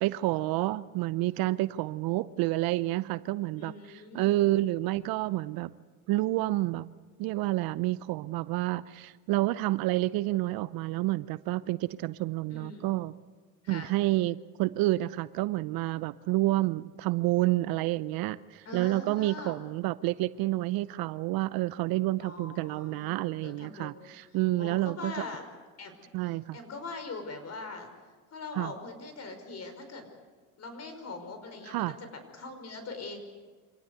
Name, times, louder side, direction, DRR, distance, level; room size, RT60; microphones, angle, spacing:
voice 1, 0.0-3.7 4.1-5.7 6.1-6.9 7.2-13.1 13.7-25.1 26.1-26.6 28.6-28.7 31.7-31.9, right 17 dB, 60° right, 17 dB, 0.7 m, -29 dB
voice 2, 3.5-4.5 12.5-13.0 13.6-13.9 18.7-19.6 22.2-24.1 24.6-25.5 25.8-25.9 26.2-27.9 28.3-30.1 30.6-33.2, left 3 dB, 40° left, 7 dB, 5.5 m, -42 dB
26.0 x 18.0 x 8.1 m, 1.4 s
hypercardioid pair, 80°, 41 cm